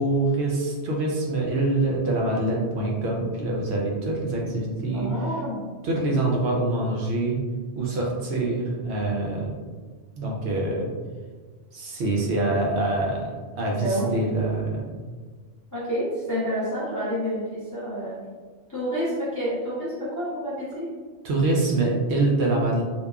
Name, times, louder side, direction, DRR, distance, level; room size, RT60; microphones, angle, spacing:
voice 1, 0.0-5.1 5.8-7.4 7.8-9.5 10.1-10.9 11.7-13.3 13.6-14.9 21.2-22.8, right 2 dB, 65° right, -2 dB, 0.8 m, -25 dB
voice 2, 4.9-5.7 13.7-14.1 15.7-18.2 18.7-20.9, equal, 30° left, -9 dB, 0.3 m, -29 dB
2.8 x 2.2 x 2.2 m, 1.5 s
omnidirectional pair, 1.3 m